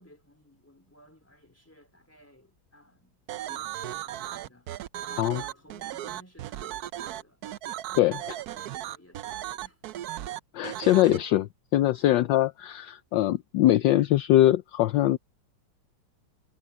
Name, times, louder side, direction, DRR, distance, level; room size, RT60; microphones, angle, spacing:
voice 1, 0.0-3.2 3.5-4.7 5.1-7.4 7.9-10.1 11.9-12.1, left 1 dB, 5° left, 3.4 m, -55 dB
sound 1, 3.3-11.2, right 13 dB, 80° right, 0.8 m, -36 dB
voice 2, 10.5-15.2, left 14 dB, 75° left, 1.2 m, -22 dB
omnidirectional pair, 2.3 m